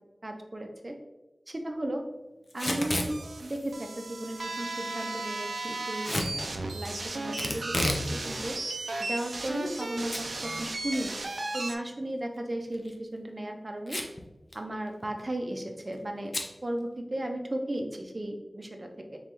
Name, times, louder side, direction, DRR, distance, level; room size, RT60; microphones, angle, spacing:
voice 1, 0.2-0.9 1.5-2.0 2.5-3.1 3.4-8.6 9.0-10.1 10.4-11.2 11.5-14.0 14.5-16.3 16.6-19.2, right 1 dB, 35° right, 3 dB, 0.6 m, -35 dB
Packing tape duct tape / Tearing, 2.5-3.1 6.0-6.3 7.4-8.1 8.4-8.5 9.2-9.8 10.1-10.2 10.6-10.7 12.7-12.9 13.9-14.2 14.5-14.6 14.9-15.2 16.3-16.5, left 1 dB, 45° left, 0.6 m, -31 dB
sound 1, 2.6-11.8, right 2 dB, 90° right, 0.4 m, -35 dB
3.8 x 3.4 x 2.9 m, 1.0 s
wide cardioid pair, 60°, 0 cm